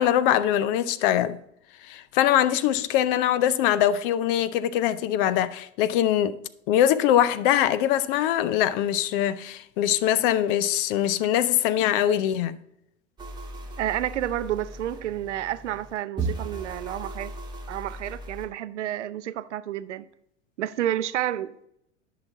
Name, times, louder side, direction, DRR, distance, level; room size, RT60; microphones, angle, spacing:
voice 1, 0.0-1.4 1.9-6.4 6.7-12.6, left 11 dB, 45° left, 0.6 m, -22 dB
sound 1, 13.2-18.5, right 3 dB, 10° right, 1.6 m, -36 dB
voice 2, 13.8-17.3 17.7-20.1 20.6-21.6, right 12 dB, 70° right, 0.6 m, -30 dB
10.5 x 5.9 x 3.5 m
figure-of-eight pair, 90°, 36 cm